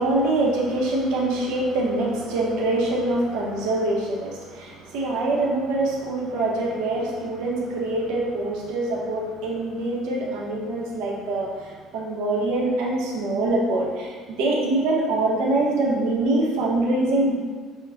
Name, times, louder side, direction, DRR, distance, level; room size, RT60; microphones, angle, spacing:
voice 1, 0.0-17.3, right 2 dB, 80° right, -3 dB, 0.8 m, -24 dB
6.1 x 2.2 x 2.5 m, 1.5 s
cardioid pair, 145°, 0 cm